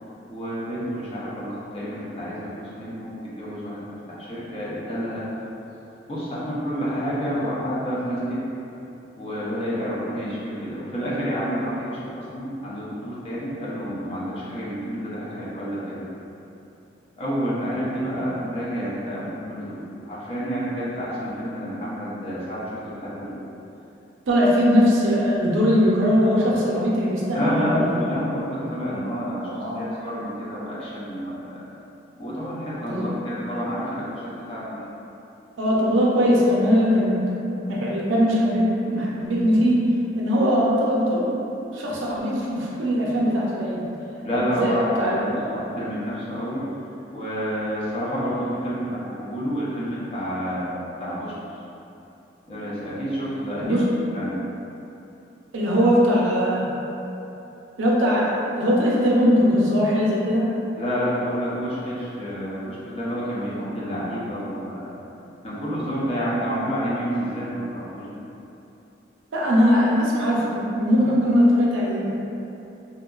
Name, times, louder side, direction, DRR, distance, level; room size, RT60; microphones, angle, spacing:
voice 1, 0.3-3.8 4.1-5.3 6.1-8.5 9.2-16.0 17.1-23.4 27.3-29.5 29.8-31.6 32.2-34.8 44.2-46.6 47.1-51.3 52.5-53.8 54.1-54.4 60.8-64.9 65.4-68.1, equal, 30° left, -8 dB, 0.5 m, -29 dB
voice 2, 24.3-27.9 29.4-29.9 32.9-33.1 35.6-37.2 37.7-39.8 40.2-41.4 41.7-43.8 44.3-45.5 53.6-53.9 55.5-56.7 57.8-60.5 69.3-72.1, equal, 85° right, -5 dB, 0.5 m, -20 dB
2.8 x 2.2 x 2.3 m, 2.9 s
head